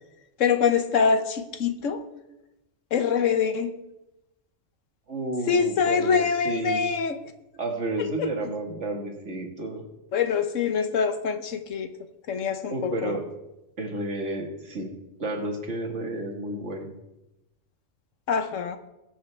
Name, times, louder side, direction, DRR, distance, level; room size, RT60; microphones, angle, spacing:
voice 1, 0.4-2.0 2.9-3.7 5.5-7.2 8.2-8.3 10.1-11.9 12.3-13.2 18.3-18.8, left 6 dB, 80° left, 9 dB, 1.3 m, -24 dB
voice 2, 5.1-6.9 7.6-9.8 12.7-13.2 13.8-14.9 15.2-16.9, right 2 dB, 65° right, 2 dB, 2.0 m, -31 dB
20.0 x 7.8 x 3.3 m, 0.94 s
omnidirectional pair, 1.3 m